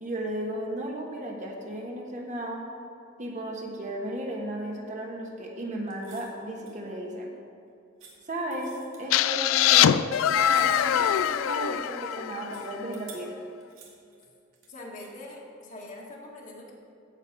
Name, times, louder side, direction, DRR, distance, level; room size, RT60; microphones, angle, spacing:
voice 1, 0.0-2.6 3.2-7.3 8.3-13.3, right 1 dB, 40° right, -1 dB, 1.4 m, -34 dB
sound 1, 5.9-6.4 6.7-6.8 8.0-8.1 8.5-9.1 10.3-11.3 12.5-13.2 13.6-14.7 15.0-15.1, right 6 dB, 80° right, 2.4 m, -50 dB
sound 2, 9.1-12.8, left 10 dB, 90° left, 0.3 m, -23 dB
voice 2, 14.7-16.7, left 1 dB, 40° left, -2 dB, 1.7 m, -43 dB
15.5 x 5.2 x 5.3 m, 2.5 s
head